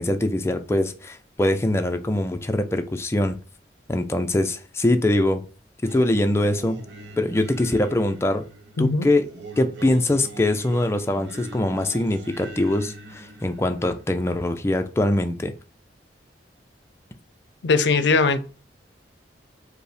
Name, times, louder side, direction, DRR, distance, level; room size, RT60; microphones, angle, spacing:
voice 1, 0.0-3.4 3.9-5.4 5.8-6.8 7.2-8.5 8.8-9.3 9.6-15.5, left 1 dB, 15° left, 0.4 m, -23 dB
Singing, 5.8-14.3, right 2 dB, 70° right, 0.9 m, -42 dB
voice 2, 8.8-9.1 17.6-18.4, left 4 dB, 70° left, 0.5 m, -20 dB
5.2 x 2.1 x 4.8 m
head